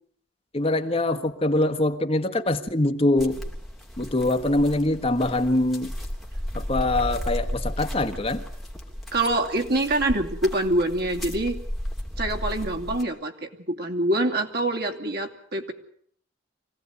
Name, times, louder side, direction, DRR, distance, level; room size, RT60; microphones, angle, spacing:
voice 1, 0.5-3.4 4.0-5.9 6.5-8.4, left 2 dB, 30° left, 7 dB, 1.5 m, -23 dB
sound 1, 3.2-13.0, equal, ahead, 3.0 m, -34 dB
voice 2, 9.1-11.6 12.2-15.7, right 1 dB, 55° right, 3 dB, 2.9 m, -25 dB
25.0 x 17.0 x 9.7 m, 0.63 s
head